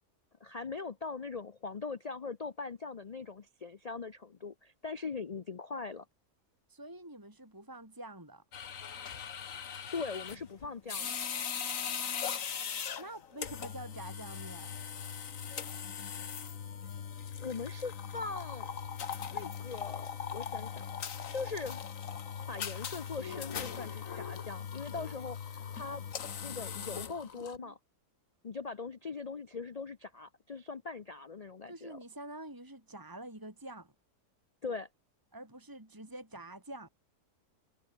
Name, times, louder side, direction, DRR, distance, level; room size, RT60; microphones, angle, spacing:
voice 1, 0.4-6.1 9.9-11.2 17.4-18.7 19.3-20.9 21.3-21.8 22.5-26.0 26.4-27.8 28.4-32.0 34.6-34.9, left 4 dB, 75° left, 0.3 m, -41 dB
voice 2, 6.7-8.4 13.0-14.8 27.3-27.7 31.7-33.9 35.3-36.9, right 1 dB, 10° right, 3.3 m, -47 dB
sound 1, 8.5-27.6, left 7 dB, 55° left, 1.6 m, -40 dB
omnidirectional pair, 1.7 m